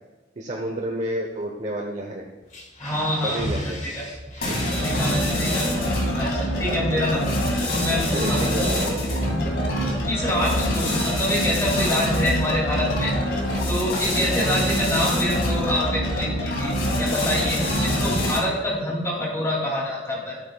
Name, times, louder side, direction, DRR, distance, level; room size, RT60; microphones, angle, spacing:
voice 1, 0.4-2.3 3.2-3.8 4.5-4.7 5.6-5.9 6.6-7.3 7.9-9.2, right 1 dB, 40° right, 0 dB, 0.9 m, -31 dB
sound 1, 2.4-12.3 12.7-13.0 13.2-14.8, left 1 dB, 40° left, 1.7 m, -38 dB
voice 2, 2.8-3.4 3.8-4.0 4.8-5.7 6.1-7.3 7.7-8.4 10.0-13.1 13.7-16.7 17.0-20.4, left 1 dB, 15° left, -4 dB, 2.7 m, -26 dB
sound 2, 4.4-18.6, equal, 65° left, 2.2 m, -24 dB
14.5 x 8.5 x 2.4 m, 1.2 s
head